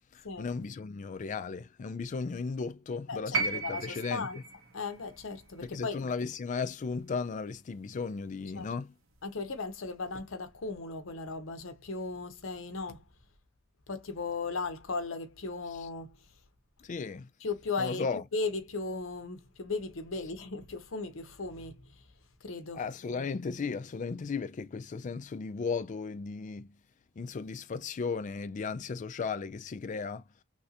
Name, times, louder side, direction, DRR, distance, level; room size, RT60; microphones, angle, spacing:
voice 1, 0.1-4.3 5.6-8.9 16.8-17.3 17.8-18.2 22.7-26.8 27.2-30.3, left 5 dB, 35° left, 0.3 m, -35 dB
voice 2, 3.1-4.4 4.7-6.0 8.6-8.7 9.2-13.0 13.9-16.2 17.4-18.1 18.3-22.0 22.4-22.8, left 3 dB, 65° left, 0.7 m, -36 dB
sound 1, 3.3-7.5 8.7-8.8, right 4 dB, 70° right, 0.9 m, -37 dB
3.1 x 2.5 x 2.7 m
head